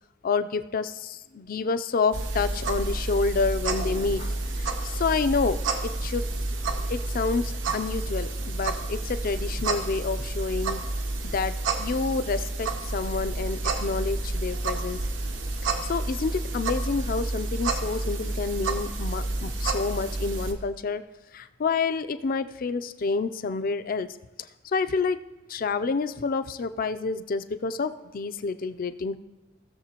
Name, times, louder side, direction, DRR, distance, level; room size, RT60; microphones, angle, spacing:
voice 1, 0.2-6.3 6.9-10.8 11.3-15.0 15.8-21.0 21.3-24.1 24.6-25.2 25.5-29.2, left 4 dB, 50° left, 11 dB, 0.4 m, -28 dB
sound 1, 2.1-20.5, right 2 dB, 80° right, 1.0 m, -30 dB
17.5 x 6.8 x 2.9 m, 1.0 s
head